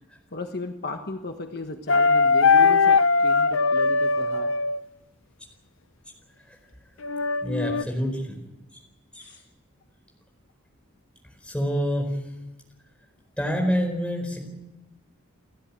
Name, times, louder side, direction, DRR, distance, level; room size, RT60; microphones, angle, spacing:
voice 1, 0.3-4.5 9.2-9.4, left 2 dB, 50° left, 5 dB, 1.3 m, -35 dB
sound 1, 1.9-4.8 7.0-7.8, left 4 dB, 70° left, 0.7 m, -20 dB
voice 2, 7.4-8.4 9.1-9.3 11.4-12.1 13.4-14.4, equal, 5° left, 2 dB, 4.6 m, -26 dB
30.0 x 12.5 x 8.7 m, 1.0 s
head